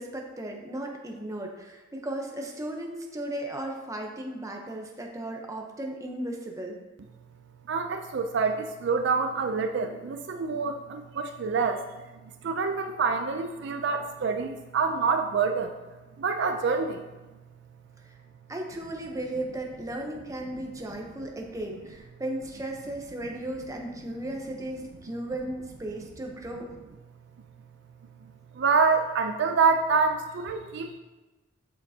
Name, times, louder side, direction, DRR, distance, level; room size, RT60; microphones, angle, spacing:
voice 1, 0.0-6.8 18.5-26.7, right 1 dB, 15° right, 1 dB, 0.8 m, -35 dB
voice 2, 7.7-11.8 12.2-15.7 16.2-17.0 28.2-31.0, right 5 dB, 60° right, 6 dB, 0.4 m, -26 dB
7.4 x 6.5 x 2.8 m, 1.1 s
head